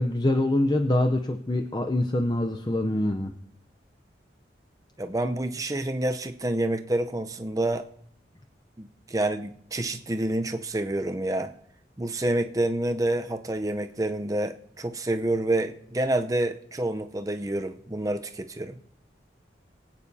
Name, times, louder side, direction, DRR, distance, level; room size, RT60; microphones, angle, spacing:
voice 1, 0.0-3.3, left 1 dB, 25° left, 5 dB, 0.6 m, -25 dB
voice 2, 5.0-7.9 8.8-11.5 12.0-18.8, right 1 dB, 20° right, 7 dB, 0.6 m, -28 dB
23.5 x 9.1 x 2.7 m, 0.70 s
head